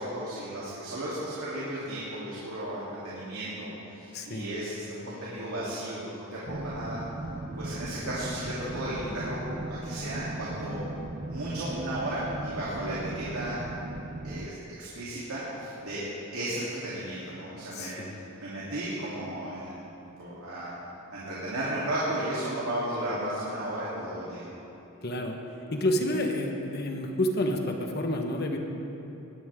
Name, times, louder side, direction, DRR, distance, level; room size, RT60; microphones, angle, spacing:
voice 1, 0.0-7.0 7.6-10.8 11.3-13.6 14.2-16.0 16.3-18.0 18.4-19.9 20.2-20.7 21.1-24.4, right 1 dB, 85° right, -9 dB, 3.3 m, -34 dB
voice 2, 4.1-4.5 17.7-18.2 25.0-25.4 25.7-28.6, left 1 dB, 45° left, 3 dB, 1.3 m, -29 dB
Passage Way Ambience (Can Be Looped), 6.5-14.5, right 2 dB, 35° right, 0.5 m, -37 dB
20.5 x 15.0 x 3.7 m, 2.9 s
head